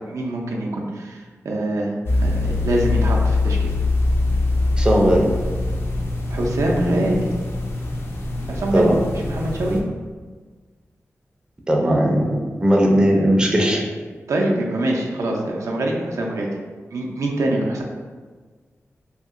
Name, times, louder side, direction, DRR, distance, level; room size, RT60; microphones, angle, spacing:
voice 1, 0.1-1.9 2.2-3.7 6.3-7.3 8.5-8.9 9.3-9.8 14.3-16.5 16.9-17.8, right 1 dB, 85° right, -1 dB, 0.4 m, -24 dB
sound 1, 2.1-9.8, left 2 dB, 50° left, 0.4 m, -23 dB
voice 2, 4.8-5.3 8.7-9.0 11.7-13.8, equal, 15° right, -1 dB, 0.4 m, -17 dB
2.8 x 2.7 x 2.4 m, 1.5 s
wide cardioid pair, 100°, 5 cm